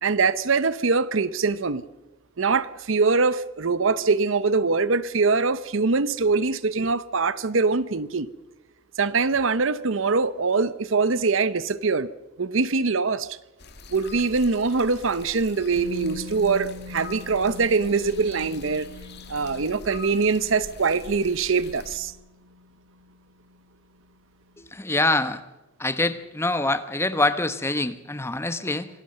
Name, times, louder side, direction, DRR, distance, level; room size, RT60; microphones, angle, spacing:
voice 1, 0.0-1.8 2.4-8.3 9.0-12.1 12.4-13.4 13.9-18.9 19.3-22.1, right 4 dB, 65° right, 0.7 m, -23 dB
sound 1, 13.6-22.0, left 3 dB, 50° left, 2.2 m, -44 dB
Musical instrument, 15.8-23.7 23.9-24.1, left 3 dB, 85° right, 7.2 m, -42 dB
voice 2, 24.6-25.4 25.8-28.9, left 2 dB, 10° left, 1.0 m, -25 dB
26.0 x 18.5 x 6.6 m
head